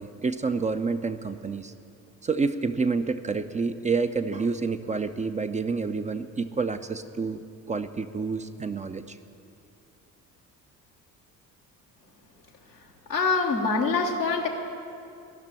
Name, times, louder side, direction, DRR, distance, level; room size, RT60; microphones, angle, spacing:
voice 1, 0.0-1.7 2.2-9.2, right 4 dB, 15° right, 9 dB, 0.5 m, -28 dB
voice 2, 13.1-14.5, left 4 dB, 90° left, -1 dB, 1.1 m, -24 dB
15.0 x 6.7 x 10.0 m, 2.5 s
figure-of-eight pair, 45°, 48 cm